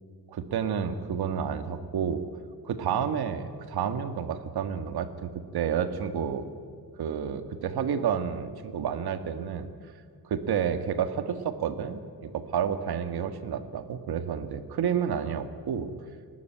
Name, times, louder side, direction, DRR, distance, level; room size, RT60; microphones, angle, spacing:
voice 1, 0.3-2.2 2.6-6.4 7.0-9.7 10.2-15.9, right 7 dB, 75° right, 9 dB, 1.8 m, -30 dB
29.0 x 12.5 x 9.2 m, 2.1 s
cardioid pair, 125°, 38 cm